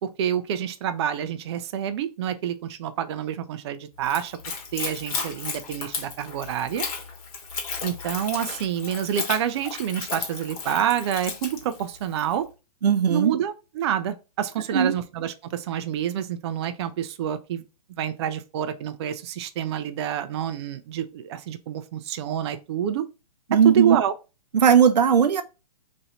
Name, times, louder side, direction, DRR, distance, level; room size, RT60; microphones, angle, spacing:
voice 1, 0.0-4.4 4.7-6.8 7.8-12.5 13.1-17.6 18.0-23.1 23.5-24.1, right 9 dB, 40° right, 0.4 m, -28 dB
Splash splatter / Trickle dribble, 4.0-12.3, left 5 dB, 60° left, 1.3 m, -34 dB
voice 2, 12.8-13.4 14.7-14.9 23.5-24.0 24.5-25.4, right 7 dB, 90° right, 0.6 m, -18 dB
3.1 x 2.7 x 4.0 m
hypercardioid pair, 140°, 20 cm